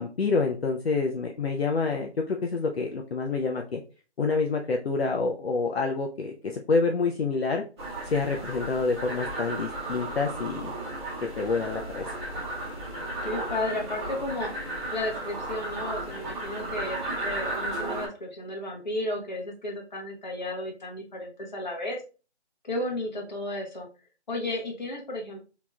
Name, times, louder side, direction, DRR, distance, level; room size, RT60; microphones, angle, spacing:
voice 1, 0.0-3.8 4.2-7.6 8.1-10.7 11.4-12.1, left 4 dB, 65° left, 2 dB, 0.6 m, -27 dB
sound 1, 7.8-18.1, right 2 dB, 25° right, 1.2 m, -34 dB
voice 2, 13.2-14.5 14.9-22.0 22.6-23.9 24.3-25.4, left 1 dB, 40° left, 0 dB, 1.1 m, -33 dB
4.4 x 3.0 x 2.3 m, 0.34 s
figure-of-eight pair, 170°, 34 cm